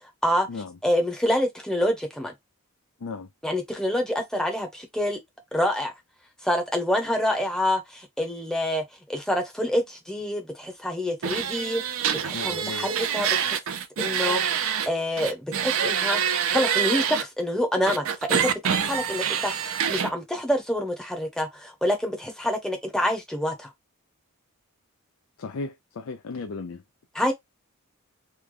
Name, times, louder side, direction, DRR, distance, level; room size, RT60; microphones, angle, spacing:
voice 1, 0.8-2.3 3.4-5.2 5.5-5.9 6.4-11.8 12.2-13.6 14.0-16.2 16.5-19.5 19.9-23.7 27.1-27.3, equal, 5° left, 0.8 m, -27 dB
sound 1, 11.2-14.9 15.2-17.2 17.9-20.1, right 8 dB, 65° right, 0.5 m, -26 dB
voice 2, 12.3-12.9 25.4-26.8, left 4 dB, 65° left, 0.4 m, -35 dB
3.2 x 2.2 x 3.7 m
head